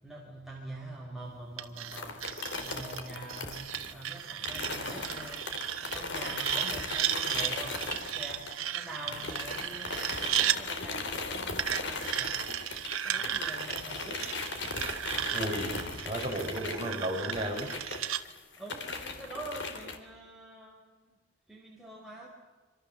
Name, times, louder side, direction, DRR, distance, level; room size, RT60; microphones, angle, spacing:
voice 1, 0.0-2.2 2.6-12.5 13.0-14.4 18.6-21.1 21.5-22.3, right 1 dB, ahead, -3 dB, 4.3 m, -45 dB
sound 1, 1.6-10.6 11.6-18.2, right 10 dB, 85° right, 1.5 m, -35 dB
sound 2, 1.9-8.8 9.1-20.0, left 3 dB, 60° left, 3.4 m, -38 dB
voice 2, 15.3-15.8 16.0-17.7, equal, 25° right, -1 dB, 6.8 m, -33 dB
27.0 x 25.5 x 7.7 m, 1.3 s
head